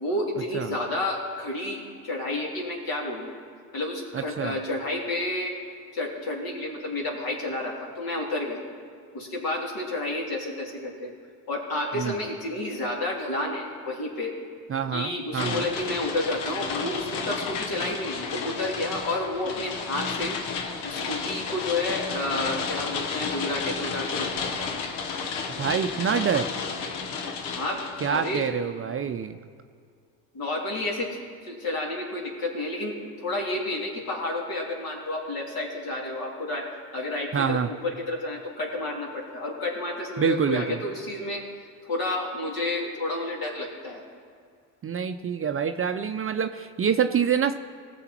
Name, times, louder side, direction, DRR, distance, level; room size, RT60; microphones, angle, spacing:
voice 1, 0.0-3.3 3.7-5.5 5.9-8.6 9.1-11.1 11.5-14.3 14.9-20.4 20.8-24.7 27.5-27.8 28.1-28.4 30.3-31.2 31.4-36.6 36.9-41.4 41.8-44.0, left 2 dB, 55° left, -2 dB, 3.4 m, -30 dB
voice 2, 4.1-4.6 11.9-12.2 14.7-15.7 25.6-26.5 28.0-29.4 37.3-37.7 40.2-40.8 44.8-47.5, right 7 dB, 30° right, 8 dB, 0.6 m, -26 dB
sound 1, 15.4-28.5, left 5 dB, 75° left, 1.2 m, -32 dB
19.0 x 7.2 x 4.5 m, 2.2 s
hypercardioid pair, 60°, 44 cm